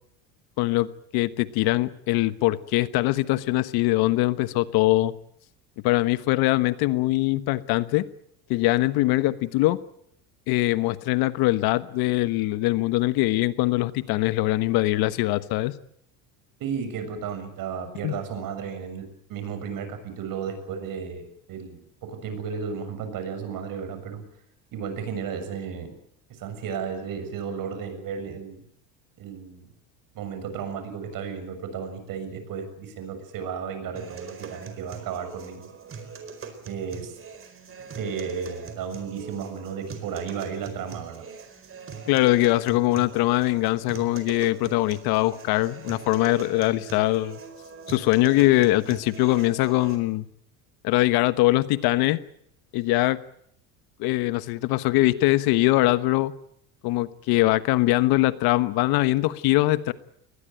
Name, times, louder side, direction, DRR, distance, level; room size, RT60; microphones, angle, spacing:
voice 1, 0.6-5.1 5.8-8.1 8.5-9.8 10.5-15.7 18.0-18.1 42.1-47.4 47.9-50.2 50.8-52.2 52.7-53.2 54.0-56.3 56.8-59.9, left 18 dB, 65° left, 15 dB, 1.3 m, -22 dB
voice 2, 16.6-24.3 24.7-25.9 26.3-28.6 29.2-29.7 30.2-35.7 36.6-37.2 37.9-41.2, right 6 dB, 55° right, 9 dB, 6.9 m, -34 dB
sound 1, 34.0-50.0, right 5 dB, 35° right, 4.5 m, -41 dB
21.5 x 20.0 x 9.0 m, 0.71 s
supercardioid pair, 100°, 40 cm